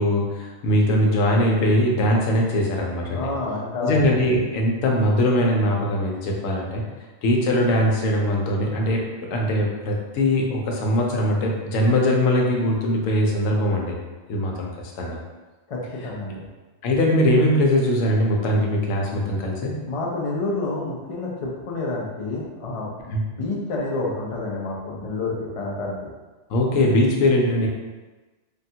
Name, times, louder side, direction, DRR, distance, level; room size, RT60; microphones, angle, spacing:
voice 1, 0.0-3.3 3.8-6.8 7.2-9.0 9.3-13.9 14.3-14.7 15.0-15.2 16.8-19.7 23.1-23.2 26.5-27.7, left 1 dB, 90° left, -1 dB, 1.0 m, -21 dB
voice 2, 3.1-4.0 15.7-16.5 19.9-22.9 23.3-26.0, left 2 dB, 55° left, -3 dB, 0.4 m, -28 dB
3.4 x 2.2 x 2.7 m, 1.2 s
omnidirectional pair, 1.3 m